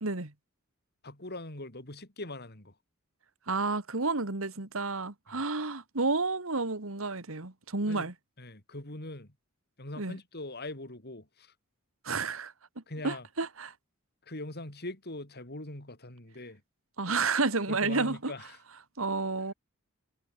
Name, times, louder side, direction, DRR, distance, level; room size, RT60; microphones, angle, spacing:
voice 1, 0.0-0.3 3.5-8.1 10.0-10.2 12.0-12.5 13.0-13.7 17.0-18.3 19.0-19.5, right 3 dB, 75° right, 2.1 m, -30 dB
voice 2, 1.0-2.7 5.3-5.4 7.9-8.1 8.4-9.3 9.8-11.5 12.9-13.3 14.2-16.6 17.7-18.6, left 2 dB, 50° left, 4.9 m, -42 dB
head